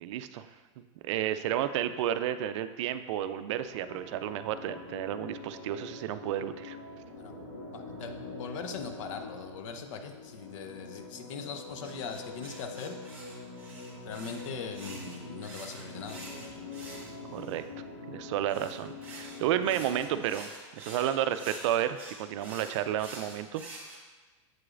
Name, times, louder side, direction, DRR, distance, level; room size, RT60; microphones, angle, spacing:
voice 1, 0.0-0.5 1.0-6.8 17.3-17.6 18.1-20.5 20.8-23.6, right 11 dB, 65° right, 11 dB, 0.4 m, -31 dB
sound 1, 3.6-20.4, left 3 dB, 90° left, 1.7 m, -45 dB
voice 2, 7.7-13.0 14.0-16.2, left 5 dB, 70° left, 6 dB, 0.7 m, -40 dB
rc car wheel turn, 11.8-17.6 18.5-24.0, right 2 dB, 10° right, 1.4 m, -47 dB
7.7 x 4.9 x 2.5 m, 1.3 s
hypercardioid pair, 125°, 16 cm